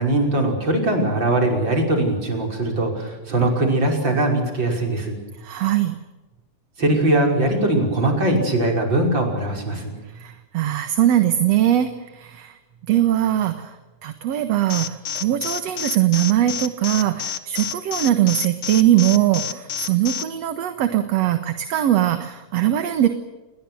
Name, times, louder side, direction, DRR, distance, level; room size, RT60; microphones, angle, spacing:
voice 1, 0.0-5.2 6.8-9.9, right 1 dB, 35° right, 2 dB, 6.4 m, -21 dB
voice 2, 5.4-6.0 10.1-12.6 12.9-13.8 14.0-23.1, right 12 dB, 60° right, 8 dB, 2.4 m, -21 dB
Alarm, 14.7-20.2, left 8 dB, 50° left, 2.0 m, -28 dB
30.0 x 22.0 x 6.4 m, 1.1 s
omnidirectional pair, 3.5 m